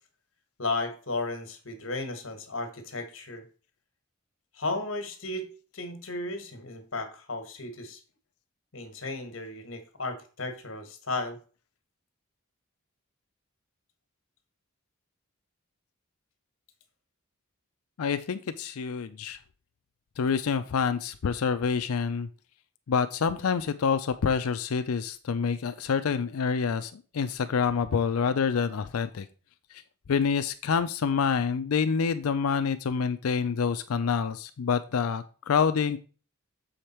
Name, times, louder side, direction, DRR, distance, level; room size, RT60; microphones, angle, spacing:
voice 1, 0.6-3.4 4.5-5.5 5.7-8.0 8.7-11.4, left 2 dB, 65° left, 7 dB, 1.5 m, -34 dB
voice 2, 18.0-19.4 20.2-22.3 22.9-29.3 30.1-36.0, left 6 dB, 80° left, 10 dB, 0.5 m, -27 dB
7.1 x 5.1 x 4.4 m, 0.37 s
head